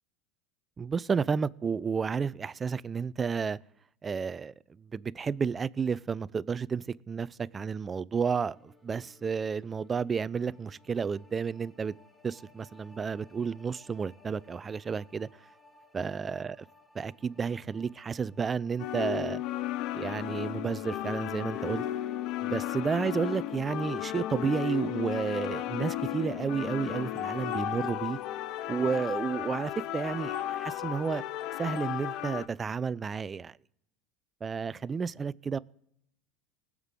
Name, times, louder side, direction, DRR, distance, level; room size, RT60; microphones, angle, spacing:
voice 1, 0.8-3.6 4.0-4.5 4.9-11.9 12.2-15.3 15.9-16.6 17.0-19.4 19.9-21.8 22.4-28.2 28.7-31.2 31.6-33.5 34.4-35.6, right 5 dB, 25° right, 0.4 m, -31 dB
sound 1, 8.5-26.3, left 1 dB, 5° left, 1.7 m, -58 dB
sound 2, 18.8-32.5, left 13 dB, 60° left, 0.6 m, -34 dB
20.0 x 7.3 x 3.7 m
hypercardioid pair, 95°, 0 cm